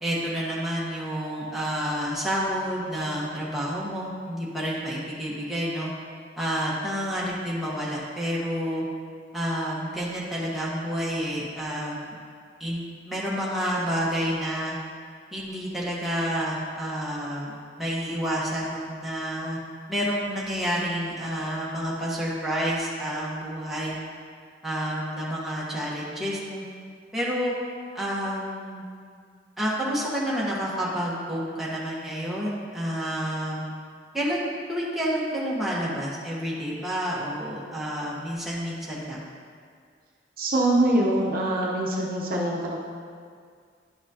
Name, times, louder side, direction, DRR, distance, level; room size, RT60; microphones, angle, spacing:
voice 1, 0.0-5.9 6.4-8.8 9.3-12.1 12.6-14.8 15.3-19.6 19.9-24.0 24.6-26.6 27.1-27.5 27.9-28.8 29.6-33.7 34.1-39.2, equal, ahead, -7 dB, 1.2 m, -29 dB
voice 2, 40.4-42.8, right 1 dB, 50° right, -2 dB, 0.8 m, -24 dB
11.0 x 5.9 x 2.8 m, 2.1 s
head